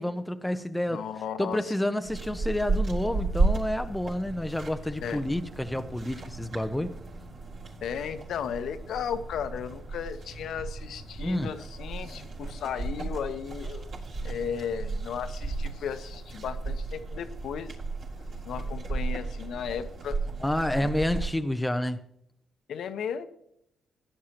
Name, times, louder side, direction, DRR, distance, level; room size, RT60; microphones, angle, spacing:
voice 1, 0.0-1.1 1.4-7.0 11.2-11.5 20.4-22.0, left 1 dB, 5° left, 0.7 m, -29 dB
voice 2, 0.9-1.6 5.0-5.2 7.8-13.9 14.2-17.7 18.5-20.2 20.8-20.9 22.7-23.3, left 8 dB, 70° left, 1.1 m, -35 dB
sound 1, 2.0-21.3, right 3 dB, 65° right, 4.2 m, -34 dB
16.5 x 10.0 x 2.9 m
cardioid pair, 90°, 0 cm